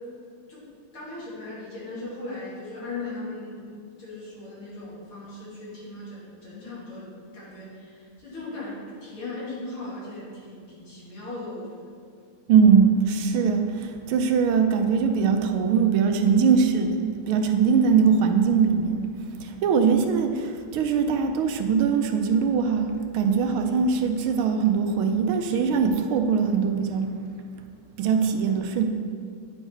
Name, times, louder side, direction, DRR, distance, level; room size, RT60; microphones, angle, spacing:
voice 1, 0.9-3.7 4.0-7.0 7.3-11.8 12.1-12.2, left 2 dB, 75° left, -8 dB, 3.2 m, -38 dB
voice 2, 12.5-19.1 19.4-27.1 28.0-28.8, right 6 dB, 80° right, 5 dB, 1.5 m, -21 dB
9.7 x 4.6 x 4.4 m, 2.2 s
omnidirectional pair, 2.4 m